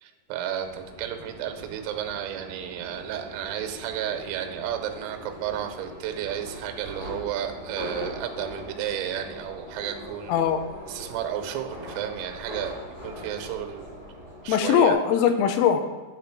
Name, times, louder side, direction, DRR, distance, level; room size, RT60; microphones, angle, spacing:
voice 1, 0.0-10.3 10.9-12.8 13.0-13.9 14.4-15.0, right 10 dB, 90° right, 6 dB, 3.3 m, -32 dB
Subway metro underground, 0.6-14.9, left 1 dB, 40° left, 2.2 m, -41 dB
voice 2, 10.3-10.6 14.5-15.9, left 8 dB, 90° left, 7 dB, 3.2 m, -21 dB
10.5 x 3.8 x 5.9 m, 1.4 s
omnidirectional pair, 5.8 m